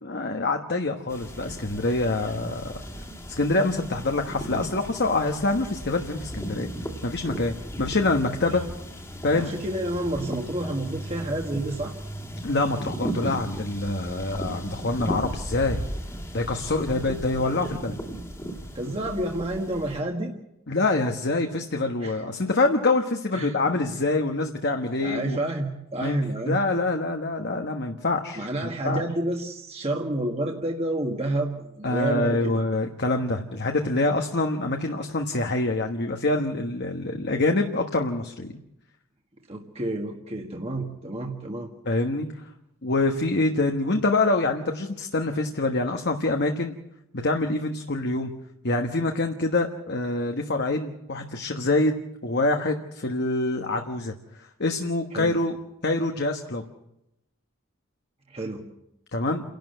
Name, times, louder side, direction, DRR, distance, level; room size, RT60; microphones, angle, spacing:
voice 1, 0.0-2.8 3.3-6.7 7.0-8.6 9.2-9.5 12.4-15.8 16.3-18.0 20.7-25.4 26.0-26.2 26.5-29.0 31.8-38.6 41.8-42.3 42.8-46.8 47.1-48.3 48.6-52.0 52.2-54.1 54.4-55.6 55.8-56.6 59.1-59.4, left 2 dB, 55° left, 4 dB, 1.4 m, -25 dB
sound 1, 1.1-20.0, right 1 dB, 15° left, 2.1 m, -36 dB
voice 2, 9.3-11.9 14.5-14.6 18.7-20.3 22.0-22.2 23.3-23.5 25.0-26.5 28.3-32.6 39.5-41.7 55.1-55.4 58.3-58.6, right 1 dB, 30° right, 1 dB, 1.6 m, -29 dB
29.0 x 12.0 x 8.0 m, 0.86 s
head